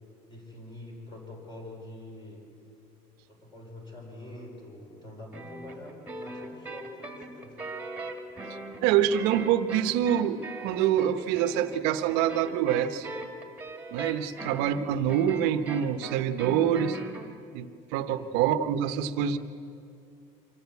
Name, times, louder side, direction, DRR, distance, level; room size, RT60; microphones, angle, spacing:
voice 1, 0.3-2.4 3.3-7.6 14.3-14.5 18.1-18.3, left 1 dB, 25° left, -1 dB, 4.7 m, -45 dB
sound 1, 5.3-17.3, right 2 dB, 10° right, 2.1 m, -40 dB
voice 2, 8.8-13.1 13.9-17.0 17.5-19.4, right 10 dB, 80° right, 9 dB, 1.0 m, -26 dB
25.0 x 14.0 x 8.3 m, 2.5 s
cardioid pair, 135°, 17 cm